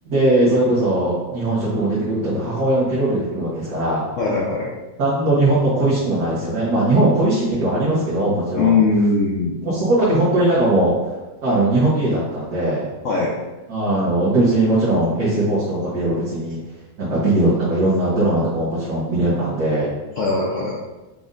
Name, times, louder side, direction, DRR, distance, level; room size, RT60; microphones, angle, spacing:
voice 1, 0.0-4.0 5.0-8.8 9.6-10.9 11.4-12.9 13.7-16.6 17.0-19.9, right 1 dB, 60° right, -9 dB, 1.5 m, -19 dB
voice 2, 4.2-4.7 8.5-9.6 13.0-13.3 20.2-20.7, left 4 dB, 75° left, -4 dB, 0.7 m, -19 dB
5.2 x 2.5 x 3.6 m, 1.1 s
omnidirectional pair, 2.1 m